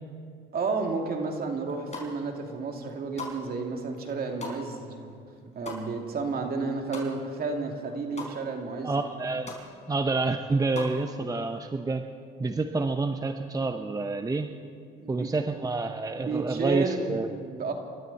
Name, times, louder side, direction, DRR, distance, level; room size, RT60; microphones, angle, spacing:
voice 1, 0.5-5.2 5.5-8.9 15.0-15.3 16.1-17.7, right 4 dB, 45° right, 2 dB, 2.6 m, -31 dB
sound 1, 1.7-2.4 2.7-7.5 7.7-8.3 8.7-8.8 9.1-9.6 10.0-11.0, left 3 dB, 35° left, 4.7 m, -41 dB
voice 2, 8.8-9.6 9.9-12.0 12.4-14.5 15.1-17.3, right 3 dB, 15° right, 6 dB, 0.8 m, -28 dB
27.0 x 12.5 x 4.2 m, 2.2 s
supercardioid pair, 85°, 21 cm